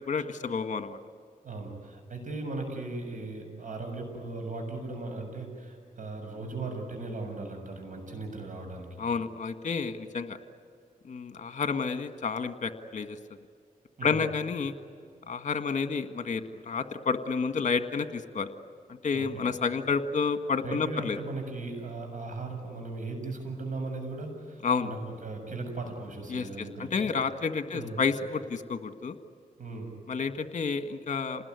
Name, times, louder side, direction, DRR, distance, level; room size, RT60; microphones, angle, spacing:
voice 1, 0.1-1.0 9.0-10.4 11.1-13.2 14.0-14.7 15.3-18.5 19.0-21.2 24.6-24.9 26.3-29.1 30.1-31.4, left 5 dB, 55° left, 9 dB, 1.6 m, -30 dB
voice 2, 1.4-9.0 14.0-14.2 19.1-19.5 20.6-26.9 27.7-28.0 29.6-29.9, right 3 dB, 60° right, 4 dB, 7.3 m, -37 dB
28.0 x 20.0 x 9.6 m, 2.3 s
cardioid pair, 75°, 15 cm